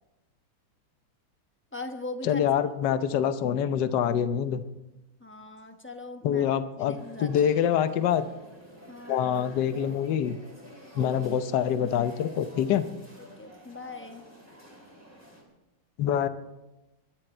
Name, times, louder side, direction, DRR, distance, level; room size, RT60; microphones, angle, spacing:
voice 1, 1.7-2.5 5.2-6.5 6.8-7.5 8.9-9.2 9.8-9.9 13.2-14.2, left 2 dB, 10° left, 5 dB, 0.7 m, -40 dB
voice 2, 2.2-4.6 6.2-8.3 9.1-10.4 11.0-12.9 16.0-16.3, left 9 dB, 70° left, 11 dB, 1.4 m, -25 dB
sound 1, 6.9-15.4, equal, 5° right, 3.2 m, -49 dB
23.5 x 11.0 x 4.4 m, 0.99 s
omnidirectional pair, 2.1 m